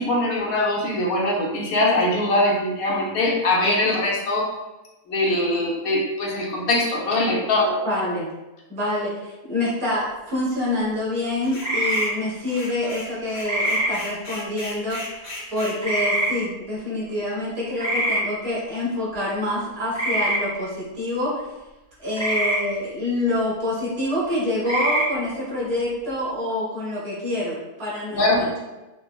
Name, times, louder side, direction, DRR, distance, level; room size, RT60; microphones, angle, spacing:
voice 1, 0.0-4.5 5.1-7.8 24.3-24.4 28.1-28.5, left 1 dB, 70° left, -2 dB, 1.1 m, -22 dB
voice 2, 7.8-8.3 8.7-21.5 22.0-28.6, left 1 dB, 65° right, -8 dB, 2.1 m, -26 dB
sound 1, 11.4-12.2 12.5-15.8, left 2 dB, 50° left, 0.9 m, -37 dB
sound 2, 11.6-12.1 13.4-13.9 15.8-16.3 17.8-18.2 19.9-20.4 22.2-22.6 24.6-25.1, right 1 dB, 10° right, 0.7 m, -23 dB
5.3 x 2.0 x 2.2 m, 1.0 s
omnidirectional pair, 1.6 m